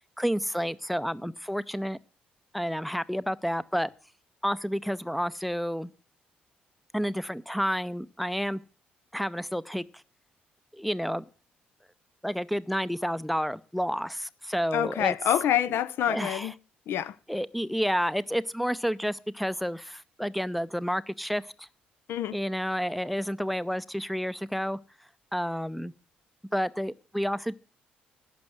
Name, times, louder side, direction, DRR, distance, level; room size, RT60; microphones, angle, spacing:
voice 1, 0.2-2.0 2.5-3.9 4.4-5.9 6.9-8.6 9.1-9.8 10.7-11.2 12.2-15.2 16.1-16.5 17.3-21.7 22.3-24.8 25.3-25.9 26.5-27.6, equal, ahead, 0.6 m, -30 dB
voice 2, 14.7-16.5 16.9-17.1 22.1-22.4, left 11 dB, 60° left, 0.5 m, -27 dB
11.5 x 6.9 x 7.7 m
figure-of-eight pair, 45°, 4 cm